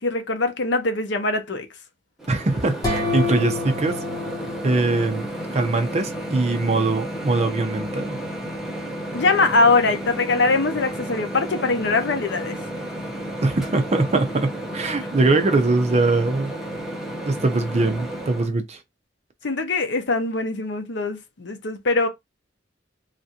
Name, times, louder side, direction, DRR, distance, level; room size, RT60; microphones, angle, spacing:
voice 1, 0.0-1.7 9.1-12.6 19.4-22.1, left 3 dB, 70° left, 0.7 m, -22 dB
Microwave oven, 2.2-18.5, right 1 dB, 5° right, 0.8 m, -32 dB
voice 2, 2.3-4.0 4.6-8.2 13.4-16.5 17.3-18.8, right 3 dB, 40° right, 0.6 m, -22 dB
sound 1, 2.8-5.6, left 3 dB, 20° left, 1.1 m, -29 dB
3.3 x 2.5 x 2.8 m
head